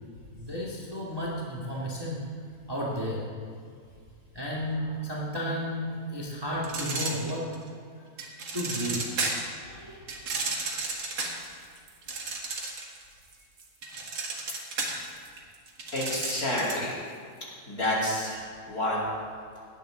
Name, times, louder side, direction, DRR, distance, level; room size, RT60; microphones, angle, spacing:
voice 1, 0.3-2.2 2.7-3.3 4.3-7.6 8.5-9.2 9.6-10.0, equal, 15° right, -5 dB, 1.9 m, -33 dB
sound 1, 6.6-7.7 8.2-9.5 10.1-13.0 13.3-16.9, right 3 dB, 85° right, 2.5 m, -33 dB
voice 2, 15.9-16.9 17.7-19.0, left 1 dB, 50° left, -5 dB, 3.4 m, -29 dB
17.0 x 11.0 x 3.9 m, 2.1 s
omnidirectional pair, 2.0 m